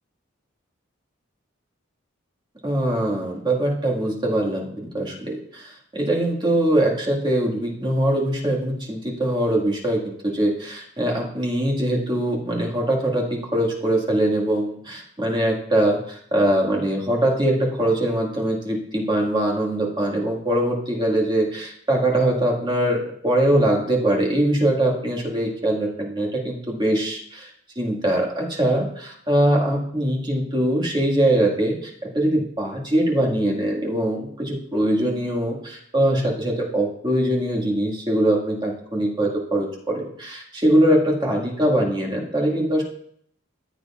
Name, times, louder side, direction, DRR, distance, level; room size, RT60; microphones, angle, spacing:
voice 1, 2.6-27.5 27.8-42.8, right 1 dB, 20° right, -2 dB, 1.9 m, -22 dB
14.5 x 8.1 x 2.4 m, 0.67 s
head